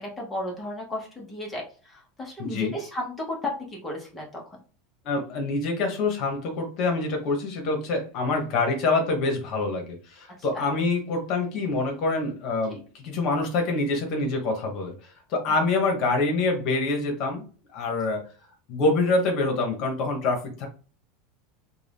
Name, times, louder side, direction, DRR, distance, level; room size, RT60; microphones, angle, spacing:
voice 1, 0.0-1.6 1.9-3.5 3.8-4.6 10.5-10.6, left 1 dB, 10° left, -2 dB, 1.1 m, -33 dB
voice 2, 2.4-2.7 5.0-17.4 17.7-18.3 18.7-20.7, left 3 dB, 45° left, 2 dB, 1.2 m, -26 dB
3.8 x 2.4 x 3.4 m, 0.38 s
supercardioid pair, 145°, 0 cm